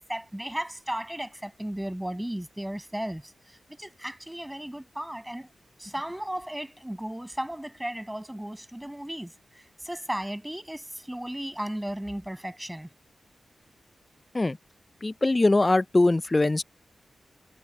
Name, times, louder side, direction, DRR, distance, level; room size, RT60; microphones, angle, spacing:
voice 1, 0.1-5.5 5.8-12.9, right 1 dB, 10° right, 7.3 m, -35 dB
voice 2, 15.0-16.6, left 2 dB, 30° left, 0.4 m, -22 dB
cardioid pair, 60°, 0 cm